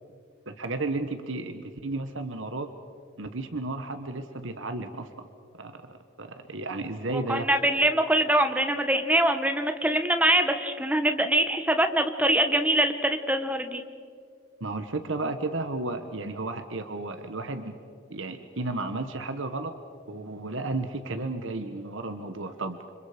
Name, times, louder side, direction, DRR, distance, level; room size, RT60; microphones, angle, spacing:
voice 1, 0.5-2.7 3.2-5.3 5.6-7.5 14.6-17.8 18.1-19.7 20.1-22.8, right 2 dB, 65° right, 8 dB, 1.3 m, -33 dB
voice 2, 7.1-13.8, right 1 dB, 5° right, 7 dB, 1.4 m, -24 dB
30.0 x 26.0 x 5.1 m, 2.3 s
head